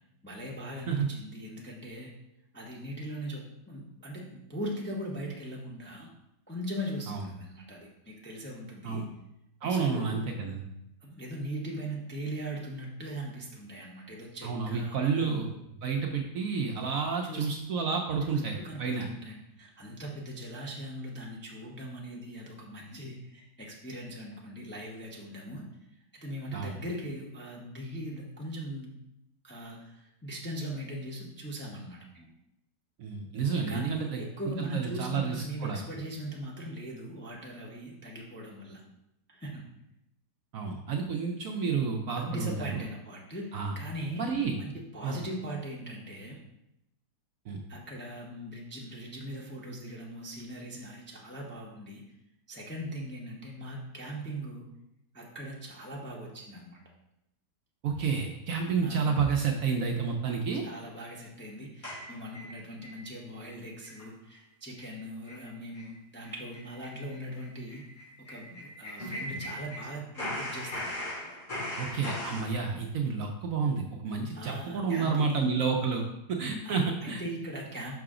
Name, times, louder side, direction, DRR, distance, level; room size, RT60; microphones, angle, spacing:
voice 1, 0.2-2.1 2.5-6.1 6.5-9.0 9.6-10.2 11.0-15.4 17.2-17.5 18.2-25.7 26.1-28.9 29.4-32.3 33.5-38.8 39.3-39.6 42.2-44.3 44.6-46.4 47.7-52.0 52.5-54.7 55.1-56.8 58.8-59.2 60.6-67.8 68.3-71.4 74.3-75.4 76.6-77.9, equal, 10° left, -3 dB, 0.6 m, -40 dB
voice 2, 9.6-10.6 14.4-15.5 15.8-19.1 26.5-26.8 33.0-34.2 34.6-35.8 40.5-42.8 43.5-43.7 44.2-44.6 45.0-45.2 47.5-47.6 57.8-60.6 71.8-77.2, right 5 dB, 65° right, 2 dB, 0.9 m, -30 dB
sound 1, 61.8-63.0 63.3-63.4 63.8-64.0 64.3-64.4 64.8-64.9 65.3-65.4 65.7-65.9 66.2-69.9 70.1-72.5, left 1 dB, 50° left, 3.2 m, -38 dB
5.8 x 5.6 x 3.7 m, 0.83 s
omnidirectional pair, 1.8 m